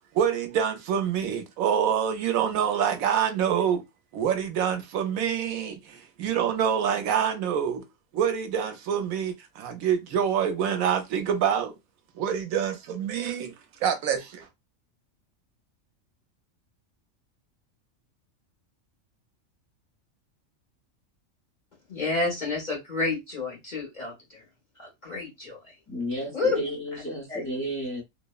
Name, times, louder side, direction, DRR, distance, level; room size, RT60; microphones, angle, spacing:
voice 1, 0.1-3.8 4.1-7.8 8.1-11.7 12.2-13.5 13.8-14.5, right 8 dB, 80° right, 1.0 m, -26 dB
voice 2, 21.9-24.4 24.8-25.7 26.3-26.6 26.9-27.0 27.3-27.5, left 3 dB, 40° left, 0.8 m, -30 dB
voice 3, 25.9-28.0, equal, 15° left, 0.6 m, -32 dB
2.8 x 2.0 x 2.2 m
omnidirectional pair, 1.4 m